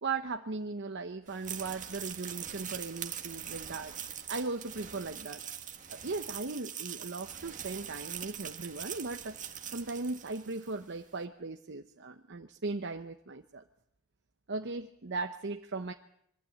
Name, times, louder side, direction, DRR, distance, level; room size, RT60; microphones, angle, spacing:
voice 1, 0.0-3.9 4.3-5.5 5.9-9.4 9.7-13.6 14.5-15.9, right 3 dB, 55° right, 6 dB, 0.9 m, -38 dB
sound 1, 1.3-10.8, right 9 dB, 35° right, 1.7 m, -42 dB
23.5 x 15.0 x 8.6 m, 0.73 s
head